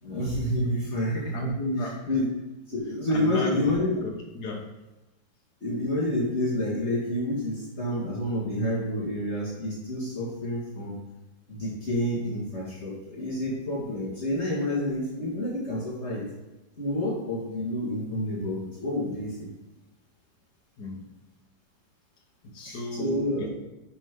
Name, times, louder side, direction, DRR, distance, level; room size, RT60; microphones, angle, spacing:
voice 1, 0.0-1.3 1.8-2.3 2.7-4.1 5.6-11.0 11.5-16.2 16.8-19.4 22.6-23.5, left 1 dB, 35° left, -7 dB, 2.2 m, -29 dB
voice 2, 1.3-2.1 3.1-3.6 4.0-4.7 20.8-21.0 22.5-23.5, equal, 60° left, 1 dB, 1.7 m, -33 dB
9.6 x 5.6 x 3.7 m, 1.0 s
omnidirectional pair, 2.0 m